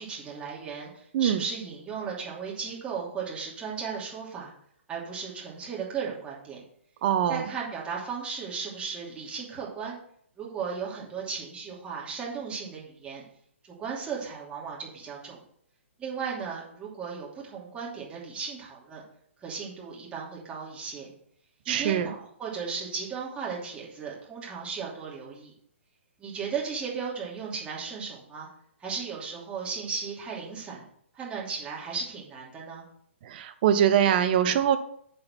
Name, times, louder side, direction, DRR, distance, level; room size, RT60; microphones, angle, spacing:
voice 1, 0.0-4.5 4.9-6.6 7.3-10.0 10.4-13.2 13.6-15.4 16.0-19.0 19.4-21.1 21.7-25.5 26.2-28.5 28.8-30.8 31.1-32.8, right 6 dB, 15° right, -4 dB, 2.9 m, -36 dB
voice 2, 7.0-7.5 21.7-22.1 33.2-34.8, right 9 dB, 45° right, 10 dB, 0.8 m, -23 dB
7.5 x 4.6 x 6.0 m, 0.64 s
figure-of-eight pair, 125°, 7 cm